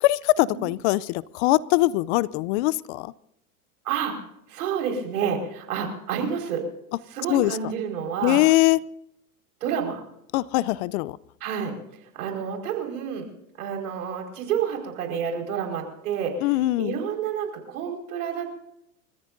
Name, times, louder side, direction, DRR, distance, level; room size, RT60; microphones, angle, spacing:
voice 1, 0.0-3.1 7.3-7.6 8.2-8.8 10.3-11.2 16.4-17.0, left 18 dB, 50° left, 21 dB, 0.6 m, -22 dB
voice 2, 3.8-4.1 4.5-6.6 7.1-8.4 9.6-10.0 11.4-11.7 12.1-13.2 13.6-16.4 16.8-18.5, right 7 dB, 70° right, 3 dB, 5.0 m, -29 dB
29.5 x 14.5 x 2.6 m, 0.80 s
hypercardioid pair, 105°, 46 cm